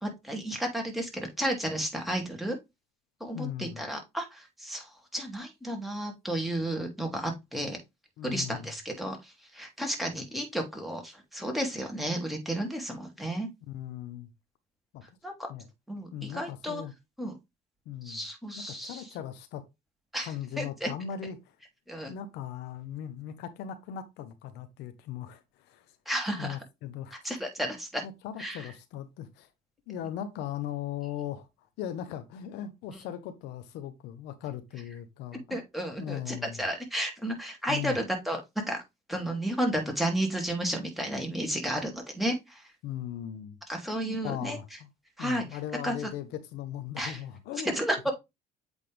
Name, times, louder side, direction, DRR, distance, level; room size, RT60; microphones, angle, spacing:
voice 1, 0.0-2.6 3.2-7.8 8.2-13.5 15.2-15.5 15.9-16.8 17.2-17.3 18.0-19.1 20.1-20.9 21.9-22.1 26.1-26.6 27.1-28.0 28.4-28.7 35.5-38.4 38.7-38.8 39.1-42.7 43.7-44.6 45.2-46.1 47.0-47.2 47.7-48.1, right 1 dB, ahead, 2.3 m, -32 dB
voice 2, 3.3-3.8 8.2-8.7 13.7-14.3 14.9-15.0 15.5-15.7 16.1-16.9 17.9-18.2 18.6-19.6 20.2-21.5 22.1-25.9 26.4-27.3 28.0-29.5 29.9-31.5 31.8-35.6 36.0-36.6 37.7-38.0 42.8-43.6 44.1-44.9 45.2-47.8, left 10 dB, 90° left, 1.0 m, -38 dB
8.2 x 3.5 x 3.4 m
cardioid pair, 110°, 17 cm